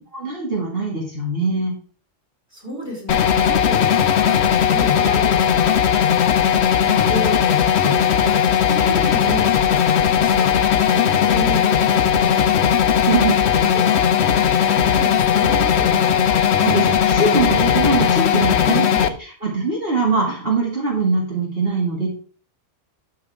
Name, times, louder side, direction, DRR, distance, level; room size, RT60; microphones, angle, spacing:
voice 1, 0.1-1.7 8.8-8.9 10.0-10.4 13.1-13.7 16.6-22.1, right 4 dB, 45° right, -4 dB, 2.7 m, -23 dB
voice 2, 2.5-5.8 6.4-9.5 10.2-10.5 10.9-12.6 13.1-13.2 13.7-14.1 14.8-16.3, equal, 10° right, -2 dB, 3.9 m, -31 dB
sound 1, 3.1-19.1, left 8 dB, 65° left, 1.0 m, -17 dB
12.5 x 7.0 x 3.6 m, 0.41 s
omnidirectional pair, 1.3 m